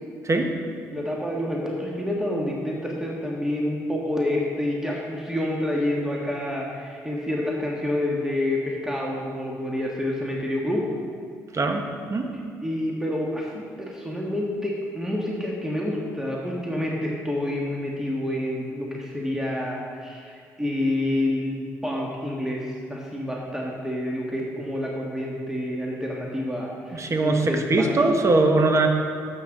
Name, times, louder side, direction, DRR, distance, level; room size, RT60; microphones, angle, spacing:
voice 1, 0.9-10.9 12.6-28.2, left 1 dB, 5° right, -2 dB, 1.7 m, -28 dB
voice 2, 11.5-12.3 26.9-28.9, right 2 dB, 40° right, 4 dB, 1.4 m, -21 dB
12.0 x 7.9 x 3.9 m, 2.3 s
hypercardioid pair, 50°, 8 cm